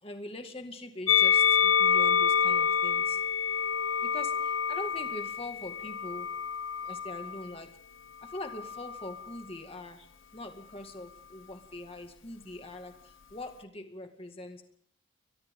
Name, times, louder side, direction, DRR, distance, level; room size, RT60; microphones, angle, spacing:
voice 1, 0.0-3.2 4.0-6.4 6.8-7.7 8.2-14.6, left 1 dB, 25° left, 5 dB, 2.1 m, -43 dB
Musical instrument, 1.1-7.5 8.3-9.3, left 7 dB, 70° left, 0.8 m, -27 dB
29.5 x 23.5 x 3.8 m, 0.63 s
head